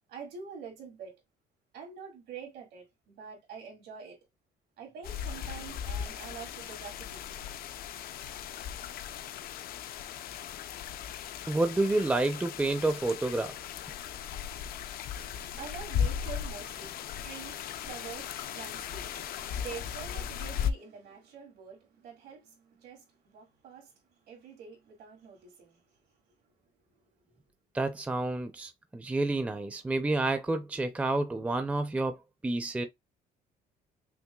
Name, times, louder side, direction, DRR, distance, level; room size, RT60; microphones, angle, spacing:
voice 1, 0.1-1.2 1.7-4.2 4.8-7.5 15.0-24.0 24.3-25.8, right 6 dB, 75° right, 1.9 m, -46 dB
sound 1, 5.0-20.7, left 8 dB, 60° left, 0.5 m, -37 dB
voice 2, 11.5-13.6 27.7-32.9, right 2 dB, 10° right, 0.5 m, -29 dB
5.9 x 2.1 x 2.3 m
cardioid pair, 110°, 17 cm